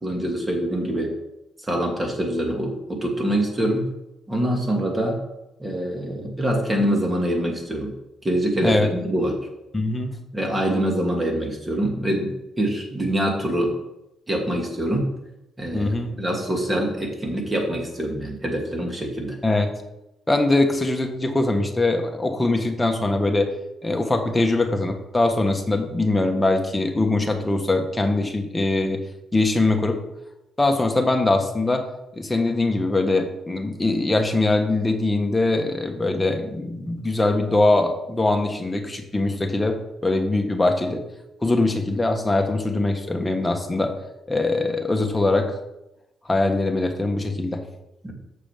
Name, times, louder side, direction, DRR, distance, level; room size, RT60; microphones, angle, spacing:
voice 1, 0.0-1.1 1.7-3.9 4.3-5.2 5.6-7.9 8.2-9.4 10.3-13.7 14.3-15.1 15.6-19.4 48.0-48.1, right 1 dB, 20° right, 1 dB, 2.5 m, -25 dB
voice 2, 9.7-10.1 15.7-16.1 19.4-19.8 20.3-23.5 23.8-29.0 29.3-30.0 30.6-31.8 32.1-41.0 41.4-43.9 44.3-45.5 46.3-47.6, left 2 dB, 15° left, 4 dB, 1.5 m, -22 dB
6.9 x 6.8 x 5.8 m, 0.90 s
cardioid pair, 90°, 0 cm